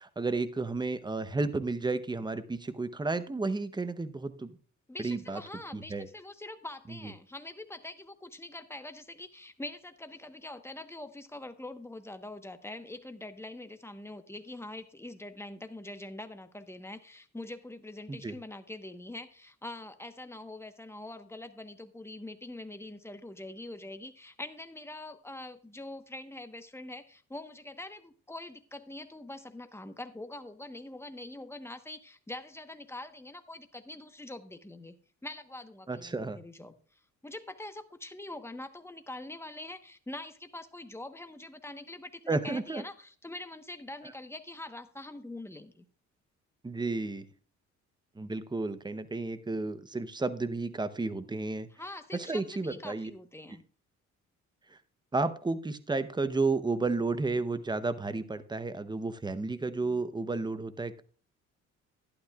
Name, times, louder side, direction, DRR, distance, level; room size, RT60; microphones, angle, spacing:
voice 1, 0.0-4.6 5.0-5.4 5.7-6.1 7.0-7.1 18.1-18.3 35.9-36.4 42.3-42.8 46.6-47.3 48.2-51.7 52.1-53.1 55.1-61.0, right 3 dB, 15° right, 12 dB, 0.8 m, -32 dB
voice 2, 4.9-34.9 35.2-45.8 51.7-53.6, left 2 dB, 10° left, 8 dB, 1.1 m, -44 dB
12.0 x 11.5 x 2.4 m, 0.42 s
cardioid pair, 90°, 30 cm